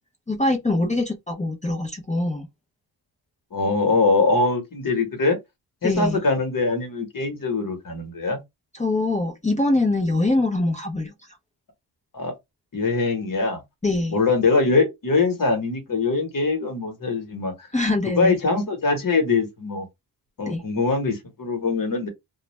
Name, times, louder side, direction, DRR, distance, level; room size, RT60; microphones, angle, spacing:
voice 1, 0.3-2.5 5.8-6.2 8.7-11.1 13.8-14.2 17.7-18.4 20.5-20.6, left 2 dB, 15° left, 0.6 m, -23 dB
voice 2, 3.5-5.4 5.8-8.4 12.1-12.3 12.7-13.6 14.1-17.7 18.2-19.9 20.4-22.1, left 3 dB, 45° left, 1.1 m, -22 dB
2.3 x 2.1 x 3.0 m
wide cardioid pair, 115°, 44 cm